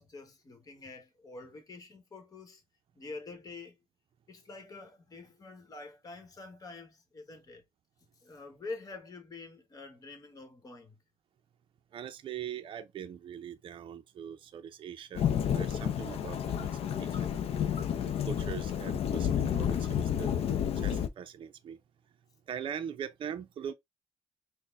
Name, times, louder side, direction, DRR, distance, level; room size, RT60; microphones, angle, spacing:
voice 1, 0.0-2.6 2.9-3.8 4.3-7.6 8.2-11.0, left 3 dB, 35° left, 1.1 m, -46 dB
voice 2, 11.9-15.3 15.5-16.7 17.0-17.3 18.3-20.3 20.8-21.8 22.5-23.7, right 8 dB, 50° right, 0.5 m, -41 dB
Thunderstorm / Rain, 15.1-21.1, left 9 dB, 65° left, 0.5 m, -30 dB
4.1 x 2.1 x 3.4 m
cardioid pair, 110°, 11 cm